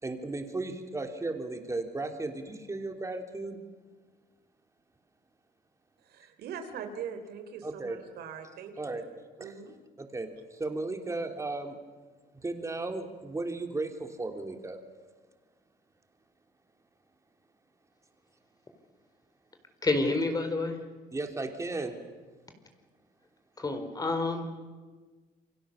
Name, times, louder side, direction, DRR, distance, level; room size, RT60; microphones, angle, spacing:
voice 1, 0.0-3.6 7.6-8.0 8.8-9.0 9.4-9.5 10.0-11.8 12.3-14.8 21.1-21.9, right 2 dB, 20° right, 4 dB, 3.3 m, -35 dB
voice 2, 6.0-9.0 9.4-9.7, right 7 dB, 70° right, 7 dB, 3.3 m, -42 dB
voice 3, 19.8-20.8 23.6-24.5, left 2 dB, 20° left, 6 dB, 4.2 m, -28 dB
28.5 x 24.5 x 7.2 m, 1.4 s
cardioid pair, 110°, 17 cm